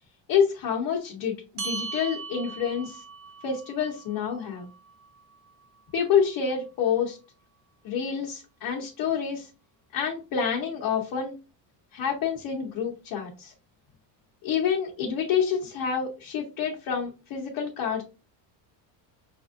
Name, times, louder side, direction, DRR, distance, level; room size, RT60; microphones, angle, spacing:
voice 1, 0.3-3.0 3.4-4.7 5.9-7.2 7.8-9.5 9.9-11.3 11.9-13.5 14.4-18.0, left 7 dB, 45° left, -2 dB, 1.0 m, -28 dB
sound 1, 1.6-6.4, right 4 dB, 50° right, 1.2 m, -40 dB
5.9 x 2.6 x 2.5 m, 0.30 s
cardioid pair, 150°, 47 cm